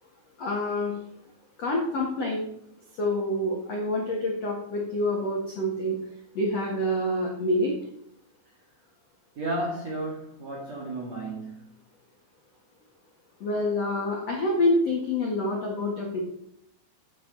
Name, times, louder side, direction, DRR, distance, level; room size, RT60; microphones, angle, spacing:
voice 1, 0.4-0.9 1.6-2.5 3.0-6.0 6.3-7.7 13.4-16.2, left 1 dB, 70° left, -2 dB, 1.5 m, -27 dB
voice 2, 9.4-11.7, right 2 dB, 50° right, -3 dB, 2.1 m, -33 dB
12.0 x 8.6 x 4.1 m, 0.73 s
omnidirectional pair, 6.0 m